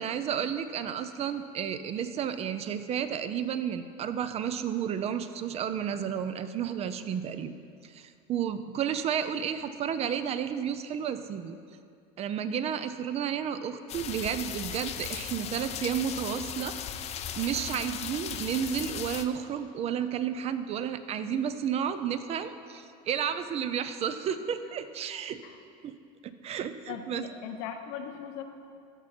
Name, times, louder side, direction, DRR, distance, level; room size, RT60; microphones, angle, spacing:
voice 1, 0.0-7.5 7.9-11.6 12.2-16.7 17.4-25.4 25.8-26.0 26.2-27.2, right 8 dB, 35° right, 11 dB, 0.4 m, -32 dB
sound 1, 13.9-19.2, left 9 dB, 35° left, 0.5 m, -37 dB
voice 2, 26.9-28.4, left 8 dB, 75° left, 6 dB, 1.0 m, -39 dB
15.0 x 5.9 x 4.3 m, 2.4 s
cardioid pair, 135°, 18 cm